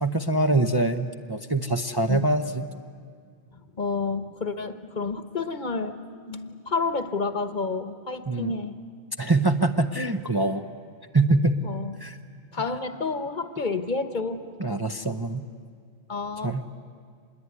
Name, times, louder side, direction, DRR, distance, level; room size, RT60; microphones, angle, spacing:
voice 1, 0.0-2.7 8.3-8.5 9.2-10.6 11.1-11.7 12.0-12.2 14.6-15.4 16.4-16.7, right 2 dB, 25° right, 5 dB, 0.7 m, -24 dB
voice 2, 3.5-5.9 6.3-8.8 11.6-12.0 12.5-14.5 16.1-16.6, left 4 dB, 45° left, 9 dB, 1.2 m, -30 dB
26.0 x 21.5 x 9.6 m, 2.1 s
omnidirectional pair, 1.1 m